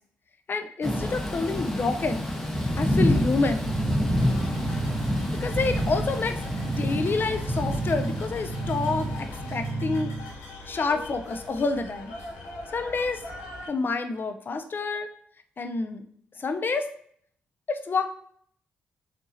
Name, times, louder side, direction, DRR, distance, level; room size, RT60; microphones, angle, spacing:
voice 1, 0.5-2.3 2.8-3.8 5.4-6.4 6.8-10.1 10.7-12.1 12.7-13.2 13.7-15.1 15.6-16.0 16.4-16.9 17.7-18.1, left 3 dB, 45° left, 7 dB, 0.6 m, -28 dB
Thunder / Rain, 0.8-9.6, left 1 dB, 5° left, 1.1 m, -28 dB
sound 1, 3.6-10.3, right 3 dB, 65° right, 1.3 m, -33 dB
sound 2, 4.2-13.7, left 3 dB, 80° left, 1.5 m, -42 dB
6.3 x 2.6 x 2.8 m, 0.62 s
hypercardioid pair, 40°, 5 cm